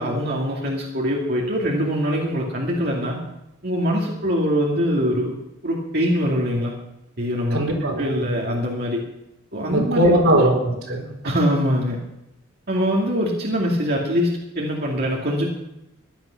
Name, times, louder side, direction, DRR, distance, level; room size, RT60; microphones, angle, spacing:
voice 1, 0.0-3.2 3.6-5.3 5.6-6.7 7.2-7.6 8.0-9.0 9.5-10.2 11.2-12.0 12.7-15.5, equal, 50° right, -2 dB, 2.5 m, -23 dB
voice 2, 7.5-8.4 9.7-11.1, right 1 dB, 75° right, -1 dB, 4.0 m, -20 dB
16.5 x 11.0 x 5.9 m, 0.89 s
head